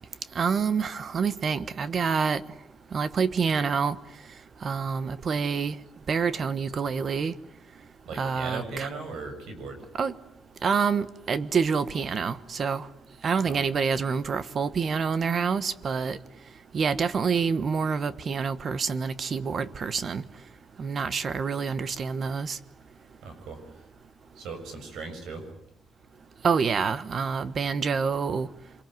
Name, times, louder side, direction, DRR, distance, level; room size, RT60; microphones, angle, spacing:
voice 1, 0.3-2.4 2.9-3.9 4.6-5.7 6.1-7.3 8.2-8.9 10.0-10.1 10.6-12.9 13.2-16.2 16.7-20.2 20.8-22.6 26.4-28.5, right 5 dB, 45° right, 1.3 m, -27 dB
voice 2, 8.1-9.8 13.4-13.6 23.2-23.9 24.3-25.5, right 4 dB, 80° right, 7.2 m, -38 dB
26.5 x 23.5 x 9.5 m
cardioid pair, 120°, 0 cm